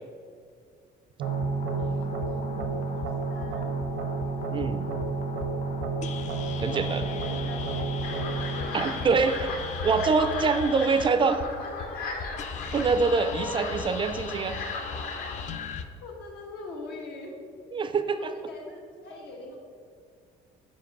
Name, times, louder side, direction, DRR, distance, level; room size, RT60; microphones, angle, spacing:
sound 1, 1.2-15.8, left 5 dB, 45° left, 0.5 m, -38 dB
sound 2, 1.2-10.2, right 4 dB, 80° right, 0.7 m, -32 dB
voice 1, 1.7-3.8 6.6-8.7 9.6-9.7 10.4-10.8 11.6-12.3 13.1-13.6 16.0-17.3 18.0-19.6, left 2 dB, 85° left, 0 dB, 1.3 m, -42 dB
voice 2, 4.5-4.9 6.6-7.0 8.7-9.6 9.8-11.4 12.7-14.6 17.7-18.3, right 4 dB, 30° right, 10 dB, 0.4 m, -25 dB
sound 3, 8.0-15.5, left 3 dB, 60° left, 1.0 m, -38 dB
5.2 x 5.0 x 5.3 m, 2.1 s
cardioid pair, 110°, 17 cm